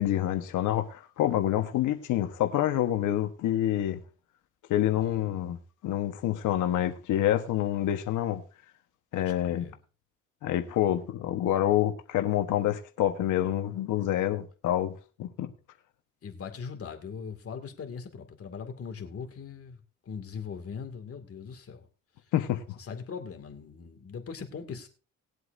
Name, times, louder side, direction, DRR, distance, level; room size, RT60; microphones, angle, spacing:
voice 1, 0.0-4.0 4.7-5.6 5.8-8.4 9.1-9.6 10.4-14.9 15.2-15.5 22.3-22.6, left 12 dB, 85° left, 1.3 m, -27 dB
voice 2, 5.0-5.5 9.1-9.8 16.2-19.8 20.1-21.8 22.8-24.9, left 6 dB, 50° left, 2.3 m, -40 dB
20.0 x 7.9 x 2.6 m
cardioid pair, 90°, 30 cm